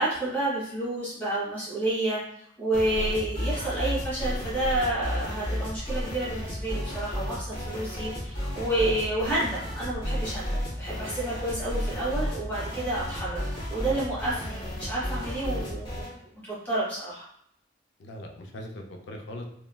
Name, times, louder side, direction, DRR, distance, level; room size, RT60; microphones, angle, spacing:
voice 1, 0.0-2.2 2.6-10.5 10.8-13.4 13.7-16.1 16.4-17.2, right 1 dB, 10° left, -10 dB, 1.2 m, -29 dB
sound 1, 2.7-16.1, equal, 30° left, 1.0 m, -33 dB
voice 2, 18.0-19.4, left 1 dB, 65° left, 3 dB, 0.4 m, -40 dB
3.3 x 2.1 x 2.2 m, 0.71 s
head